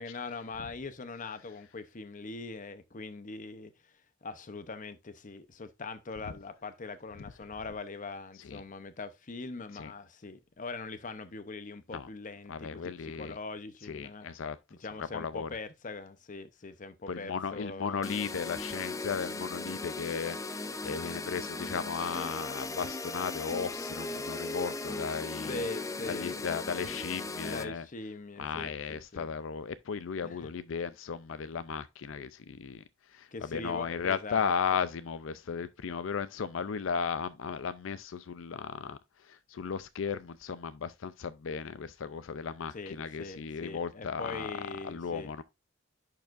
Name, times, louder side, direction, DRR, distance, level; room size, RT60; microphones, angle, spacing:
voice 1, 0.0-3.7 4.2-14.4 14.8-18.1 25.5-26.6 26.9-27.0 27.4-29.3 30.2-30.5 33.3-34.8 42.7-45.3, left 3 dB, 40° left, 0.8 m, -42 dB
voice 2, 12.5-13.3 13.9-14.6 15.1-15.5 17.1-25.7 26.1-27.9 28.4-32.8 33.1-39.0 39.3-44.5 44.8-45.4, left 6 dB, 80° left, 0.5 m, -35 dB
sound 1, 18.0-27.6, left 2 dB, 15° left, 0.4 m, -38 dB
10.5 x 4.8 x 2.5 m
head